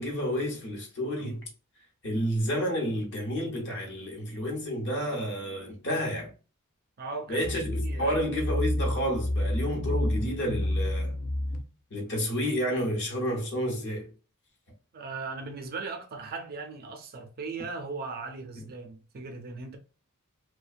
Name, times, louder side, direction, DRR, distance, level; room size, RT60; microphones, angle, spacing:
voice 1, 0.0-1.5 2.0-6.3 7.3-11.2 11.9-14.1, equal, 55° left, 0.8 m, -30 dB
voice 2, 7.0-8.2 14.9-19.8, right 4 dB, 45° right, 0.5 m, -38 dB
sound 1, 7.4-11.6, left 1 dB, 35° left, 0.3 m, -29 dB
2.3 x 2.2 x 2.4 m
head